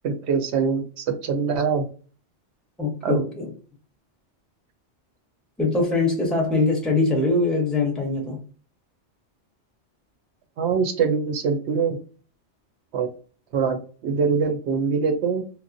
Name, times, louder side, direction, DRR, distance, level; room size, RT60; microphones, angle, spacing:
voice 1, 0.0-1.9 3.0-3.2 10.6-12.0 12.9-13.1 13.5-15.4, right 5 dB, 75° right, 7 dB, 0.9 m, -23 dB
voice 2, 2.8-3.5 5.6-8.4, left 3 dB, ahead, 0 dB, 0.7 m, -22 dB
3.0 x 2.0 x 2.6 m, 0.38 s
omnidirectional pair, 1.2 m